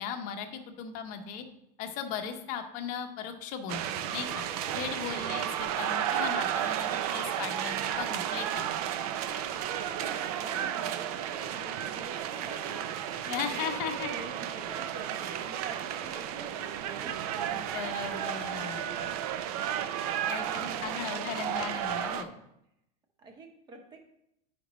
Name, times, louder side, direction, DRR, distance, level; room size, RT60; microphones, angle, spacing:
voice 1, 0.0-1.4 1.8-4.3 4.7-8.8 13.3-14.1 17.5-19.1 20.3-22.3, left 7 dB, 40° left, 6 dB, 0.8 m, -37 dB
sound 1, 3.7-22.2, right 10 dB, 65° right, 0.6 m, -33 dB
voice 2, 5.1-5.4 9.9-12.9 13.3-17.6 20.4-22.0 23.2-24.0, right 2 dB, 20° right, 4 dB, 0.9 m, -47 dB
9.9 x 5.1 x 3.1 m, 0.82 s
supercardioid pair, 165°, 21 cm